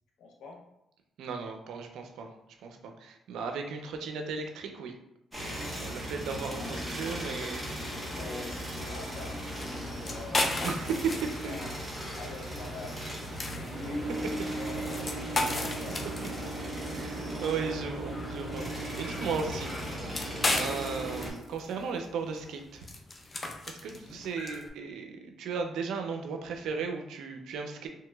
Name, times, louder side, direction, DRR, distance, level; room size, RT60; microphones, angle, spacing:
voice 1, 0.2-0.6 6.4-9.5 10.0-10.9 11.2-11.8 12.1-13.1 13.4-14.2 14.4-16.5 23.9-24.2, left 3 dB, 85° left, 1 dB, 0.7 m, -46 dB
voice 2, 1.2-2.3 2.6-4.9 5.8-7.6 10.6-11.6 16.9-22.9 23.7-27.9, right 5 dB, 80° right, 4 dB, 0.4 m, -36 dB
sound 1, 5.3-21.3, right 1 dB, ahead, 1.0 m, -37 dB
sound 2, 7.3-14.7, right 1 dB, 35° right, 1.2 m, -51 dB
sound 3, 9.4-24.7, left 2 dB, 30° left, 0.5 m, -36 dB
3.1 x 2.8 x 2.3 m, 0.85 s
cardioid pair, 90°, 0 cm